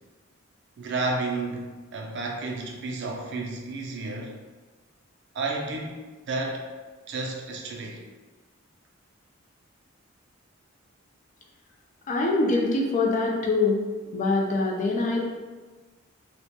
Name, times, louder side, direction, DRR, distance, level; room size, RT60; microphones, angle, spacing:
voice 1, 0.8-4.4 5.3-6.6 7.1-8.0, right 3 dB, 60° right, 0 dB, 0.4 m, -31 dB
voice 2, 12.1-13.8 14.1-15.3, left 3 dB, 40° left, -1 dB, 0.3 m, -24 dB
2.1 x 2.0 x 2.8 m, 1.3 s
head